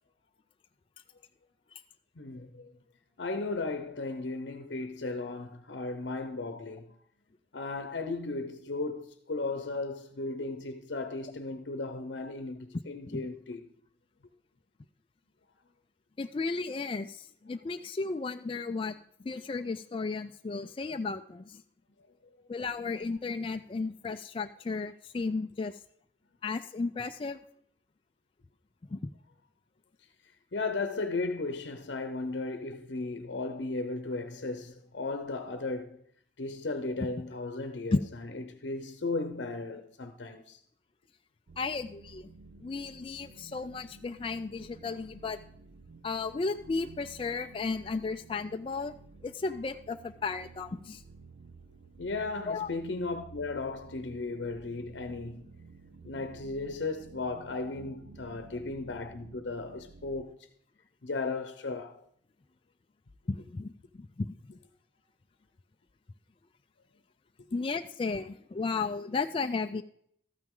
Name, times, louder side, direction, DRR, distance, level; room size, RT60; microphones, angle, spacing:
voice 1, 2.2-2.7 3.2-6.9 7.5-13.7 30.5-36.0 36.4-40.6 52.0-55.5 56.0-60.4 61.0-62.0, left 3 dB, 70° left, 0.7 m, -35 dB
voice 2, 16.2-18.9 19.2-21.6 22.5-25.8 26.4-27.4 28.9-29.0 37.9-38.0 41.6-42.3 42.6-45.4 46.0-48.9 49.2-51.0 52.5-52.7 63.3-63.7 64.0-64.3 67.5-69.8, left 4 dB, 30° left, 0.3 m, -34 dB
sound 1, 41.5-60.3, right 4 dB, 80° right, 0.5 m, -53 dB
13.0 x 9.2 x 3.7 m
head